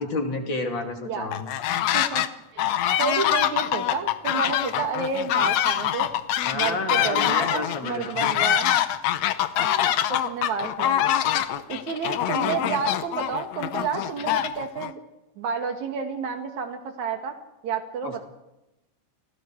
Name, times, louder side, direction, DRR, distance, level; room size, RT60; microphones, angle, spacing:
voice 1, 0.0-1.5 6.5-8.3 18.0-18.2, left 3 dB, 35° left, 3 dB, 3.1 m, -30 dB
sound 1, 1.3-2.3 2.6-14.9, left 11 dB, 70° left, 1.7 m, -24 dB
voice 2, 1.9-2.2 2.5-2.7 3.0-6.1 6.5-8.8 9.6-11.0 11.5-15.0 15.4-17.4 17.6-18.2, right 6 dB, 60° right, 5 dB, 3.2 m, -30 dB
29.5 x 20.5 x 4.8 m, 0.94 s
omnidirectional pair, 3.9 m